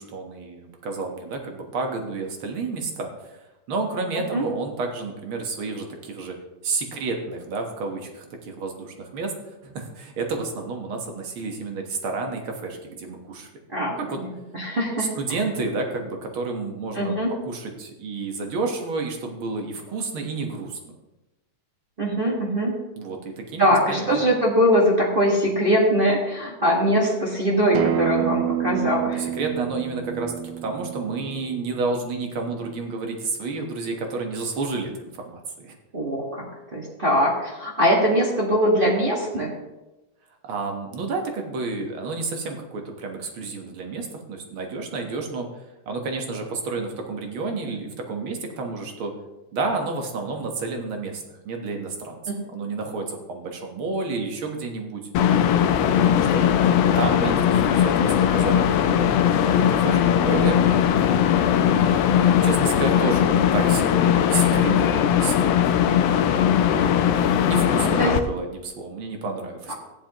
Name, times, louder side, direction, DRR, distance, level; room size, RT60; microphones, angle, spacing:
voice 1, 0.0-3.4 3.7-6.4 6.6-13.5 13.9-14.2 15.0-17.1 17.4-20.8 23.0-24.2 28.7-30.3 30.6-35.8 40.4-45.5 45.9-49.1 49.5-52.2 52.5-55.1 55.8-56.4 57.0-59.2 59.4-60.6 61.6-65.3 67.5-69.7, right 3 dB, 55° right, 3 dB, 1.8 m, -30 dB
voice 2, 13.7-14.3 14.5-15.1 16.9-17.3 22.0-22.7 23.6-29.3 35.9-36.4 36.7-39.5 52.3-52.4 64.5-64.9 67.8-68.2 69.7-69.8, equal, 30° right, -4 dB, 1.1 m, -22 dB
Acoustic guitar, 27.7-32.9, right 11 dB, 90° right, 2.2 m, -29 dB
sound 1, 55.1-68.2, left 9 dB, 85° left, 1.4 m, -19 dB
14.5 x 10.0 x 3.0 m, 1.0 s
omnidirectional pair, 3.4 m